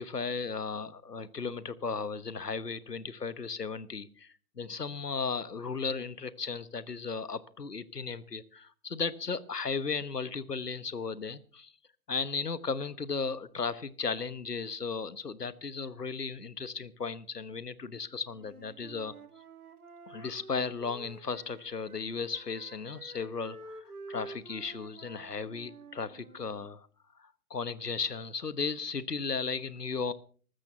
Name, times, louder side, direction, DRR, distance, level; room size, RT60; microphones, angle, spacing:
voice 1, 0.0-11.7 12.1-19.1 20.1-26.9 27.2-30.1, left 5 dB, 80° left, 17 dB, 1.2 m, -35 dB
Wind instrument woodwind instrument, 18.3-22.0 22.3-26.7, right 3 dB, 65° right, 2.6 m, -49 dB
14.0 x 13.5 x 5.7 m, 0.43 s
figure-of-eight pair, 130°, 47 cm